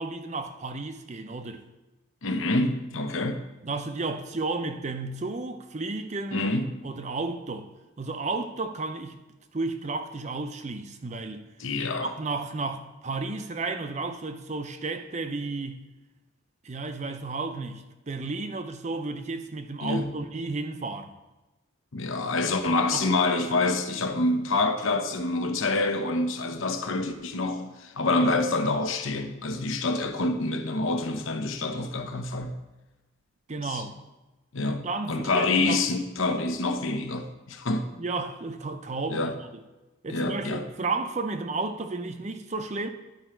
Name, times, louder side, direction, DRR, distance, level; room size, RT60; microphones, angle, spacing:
voice 1, 0.0-1.6 3.6-6.5 6.8-7.7 8.0-9.2 9.5-11.4 12.0-15.9 16.6-21.1 22.9-23.1 33.5-34.0 34.6-35.8 38.0-39.6 40.0-42.9, right 3 dB, 35° right, 0.5 m, -33 dB
voice 2, 2.2-3.4 6.3-6.9 11.6-12.1 19.8-20.0 21.9-32.5 33.6-33.8 34.5-37.9 39.1-39.4 40.1-40.6, left 2 dB, 70° left, 0.9 m, -27 dB
11.0 x 5.0 x 4.4 m
head